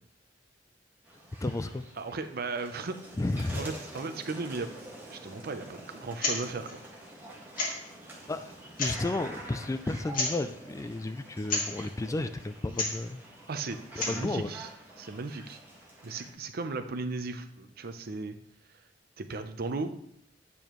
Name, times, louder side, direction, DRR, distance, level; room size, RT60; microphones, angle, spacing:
sound 1, 1.0-16.3, right 1 dB, 10° right, 1.7 m, -47 dB
voice 1, 1.4-1.8 3.2-3.6 8.3-8.5 8.8-13.2 14.1-14.5, left 2 dB, 15° left, 10 dB, 0.3 m, -32 dB
voice 2, 2.0-3.0 3.5-4.7 5.0-6.8 13.5-14.7 15.0-15.6 16.0-18.4 18.7-18.8 19.2-19.9, right 3 dB, 55° right, 8 dB, 0.6 m, -36 dB
sound 2, 6.1-6.4 6.6-6.7 7.5-7.9 8.6-9.1 10.1-10.4 11.4-11.7 12.7-13.0 13.8-14.3, left 3 dB, 50° left, 1.9 m, -31 dB
8.4 x 6.9 x 3.0 m, 0.70 s
head